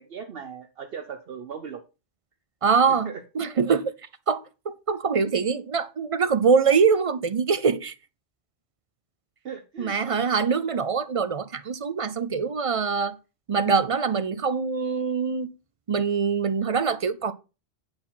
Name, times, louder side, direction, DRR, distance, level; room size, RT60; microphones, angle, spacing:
voice 1, 0.0-1.8 2.9-3.2 9.4-10.0, right 7 dB, 60° right, 1.0 m, -38 dB
voice 2, 2.6-3.9 4.3-7.9 9.8-13.2 13.5-15.5 15.9-17.3, right 5 dB, 45° right, 0.4 m, -24 dB
9.7 x 4.3 x 5.6 m
omnidirectional pair, 1.1 m